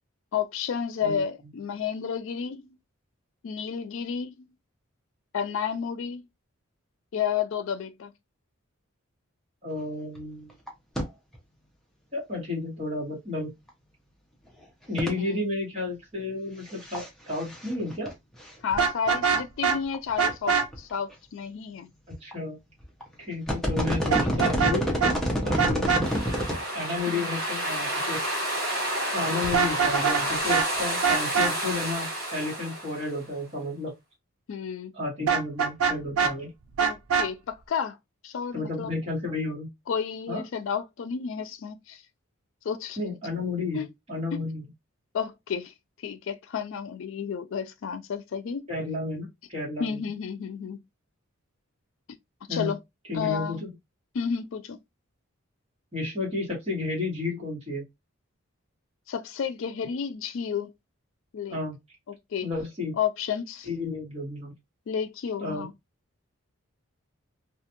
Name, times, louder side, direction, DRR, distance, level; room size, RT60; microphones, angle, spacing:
voice 1, 0.3-2.7 3.4-4.3 5.3-6.3 7.1-8.1 15.2-15.4 18.6-21.9 27.1-27.3 34.5-34.9 36.8-38.0 38.2-39.0 39.9-42.0 42.6-43.0 43.7-43.9 44.3-44.4 45.1-45.7 46.0-48.6 49.8-50.8 52.5-52.8 53.1-53.6 54.1-54.8 59.1-60.7 61.3-61.6 62.1-62.5 63.0-63.7 64.9-65.7, left 7 dB, 65° left, 0.3 m, -31 dB
voice 2, 9.6-10.5 12.1-13.5 14.9-18.1 22.1-22.6 23.2-24.9 25.4-26.1 26.7-28.2 29.1-33.9 34.9-36.5 38.5-39.7 40.3-40.4 43.0-44.6 48.7-50.0 52.5-52.7 53.1-53.7 55.9-57.8 61.5-61.8 62.4-62.9 63.6-64.5 65.4-65.7, left 2 dB, 30° right, 1.3 m, -32 dB
sound 1, 10.1-10.2 10.5-10.7 10.9-11.0 11.3-11.4 13.7-13.8 15.0-15.1 16.7-17.1 17.3-18.1 18.5-18.6 19.4-19.5 19.9-20.0 20.3-20.4 20.7-21.1 22.1-22.3 22.8-23.0 23.3-26.6 27.0-27.1, equal, ahead, 0.6 m, -27 dB
Vehicle horn car horn honking, 18.7-19.8 20.2-20.7 24.1-24.8 25.0-25.1 25.6-26.0 29.4-30.2 30.5-30.7 31.0-31.5 35.3-36.3 36.8-37.3, right 6 dB, 85° right, 0.4 m, -23 dB
sound 2, 26.0-33.3, right 1 dB, 50° right, 1.3 m, -30 dB
2.5 x 2.3 x 2.7 m
head